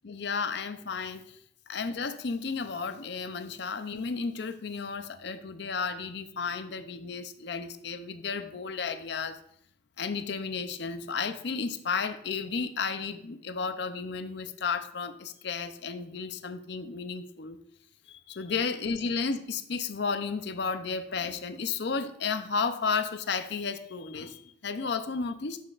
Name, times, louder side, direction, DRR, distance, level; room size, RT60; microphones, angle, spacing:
voice 1, 0.0-1.4 1.7-9.4 10.0-17.6 18.1-25.6, left 5 dB, 55° left, 10 dB, 0.5 m, -33 dB
9.6 x 7.2 x 2.4 m, 0.69 s
head